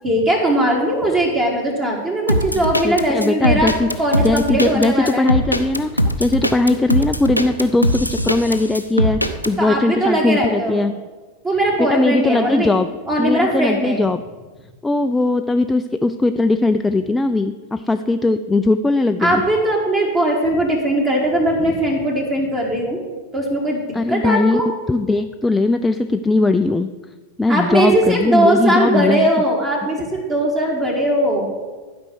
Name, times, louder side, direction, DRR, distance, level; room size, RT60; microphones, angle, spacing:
voice 1, 0.0-3.7 4.0-5.3 9.6-10.8 11.4-12.7 13.1-14.1 19.2-23.0 23.3-24.7 27.5-31.5, right 1 dB, 25° right, 0 dB, 1.6 m, -19 dB
sound 1, 2.3-9.5, equal, 90° left, 0.6 m, -20 dB
voice 2, 2.8-3.9 4.2-10.9 11.9-12.9 13.2-14.2 14.8-19.4 23.9-24.6 24.9-26.9 27.4-29.3, left 2 dB, 10° left, 8 dB, 0.3 m, -19 dB
12.0 x 5.2 x 6.1 m, 1.3 s
figure-of-eight pair, 90°, 0 cm